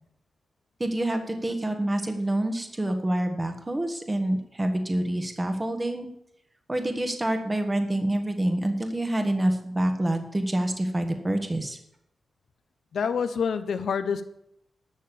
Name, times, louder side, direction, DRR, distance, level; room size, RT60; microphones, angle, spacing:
voice 1, 0.8-6.1 6.7-11.8, right 1 dB, 20° right, 5 dB, 1.4 m, -27 dB
voice 2, 12.9-14.2, left 6 dB, 75° left, 11 dB, 0.9 m, -27 dB
11.5 x 6.7 x 6.9 m, 0.77 s
cardioid pair, 80°, 0 cm